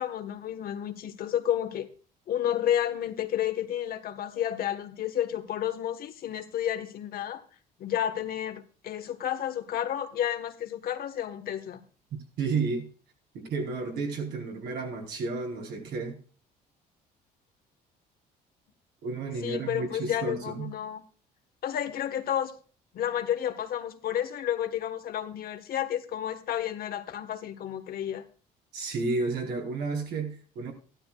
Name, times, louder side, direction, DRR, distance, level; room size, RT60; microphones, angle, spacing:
voice 1, 0.0-1.9 2.3-7.4 7.8-11.8 19.4-21.0 21.6-22.5 22.9-28.2, left 10 dB, 60° left, 1.4 m, -31 dB
voice 2, 12.4-12.9 13.3-16.2 19.0-20.7 28.7-30.7, right 4 dB, 75° right, 4.2 m, -32 dB
15.0 x 12.5 x 2.4 m
cardioid pair, 110°, 17 cm